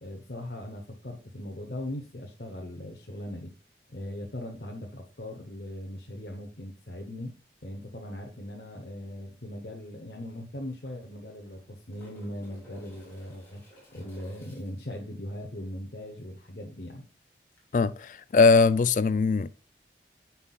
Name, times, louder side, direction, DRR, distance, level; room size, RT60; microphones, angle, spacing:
voice 1, 0.0-3.5 3.9-7.3 7.6-13.6 13.9-17.0, left 1 dB, 60° left, 1.0 m, -39 dB
sound 1, 11.3-15.0 17.5-17.6, equal, 15° left, 3.1 m, -55 dB
voice 2, 17.7-19.6, left 4 dB, 45° left, 0.3 m, -21 dB
9.5 x 5.9 x 2.4 m
head